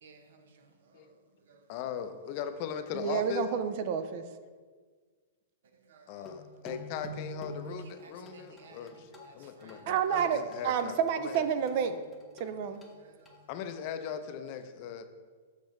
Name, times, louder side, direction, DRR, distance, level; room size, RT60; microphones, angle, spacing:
voice 1, 0.0-0.6 1.4-1.8 5.7-6.6 7.6-9.9 12.7-13.5, right 4 dB, 75° right, 0.8 m, -58 dB
voice 2, 1.7-3.5 6.1-9.1 9.3-11.4 13.5-15.0, left 9 dB, 40° left, 0.5 m, -39 dB
voice 3, 2.9-4.2 9.9-12.0 12.4-12.8, right 7 dB, 45° right, 0.5 m, -29 dB
sound 1, 6.3-13.8, equal, 10° left, 0.8 m, -47 dB
6.5 x 6.0 x 3.1 m
hypercardioid pair, 150°, 0 cm